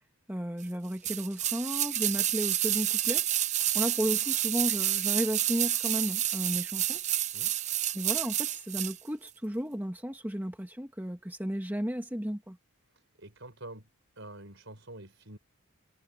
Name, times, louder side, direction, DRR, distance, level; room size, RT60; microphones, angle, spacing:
voice 1, 0.3-3.3 3.7-7.0 7.9-12.6, equal, 10° right, 1.4 m, -33 dB
sound 1, 1.0-9.0 9.3-9.4, right 12 dB, 30° right, 0.6 m, -29 dB
voice 2, 12.9-13.9 14.2-15.4, right 2 dB, 60° right, 5.3 m, -47 dB
head